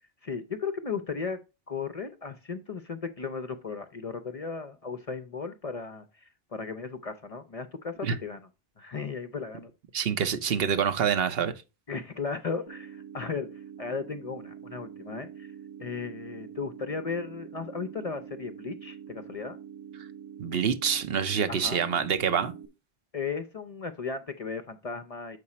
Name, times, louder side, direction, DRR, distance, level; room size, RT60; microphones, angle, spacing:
voice 1, 0.2-1.4 1.7-8.4 8.8-9.7 11.9-15.5 15.8-19.6 21.5-21.8 23.1-25.4, left 5 dB, 45° left, 0.5 m, -36 dB
voice 2, 9.9-11.5 20.4-22.5, right 7 dB, 70° right, 0.9 m, -26 dB
sound 1, 12.7-22.7, right 8 dB, 30° right, 0.6 m, -45 dB
6.7 x 4.9 x 4.2 m
omnidirectional pair, 1.0 m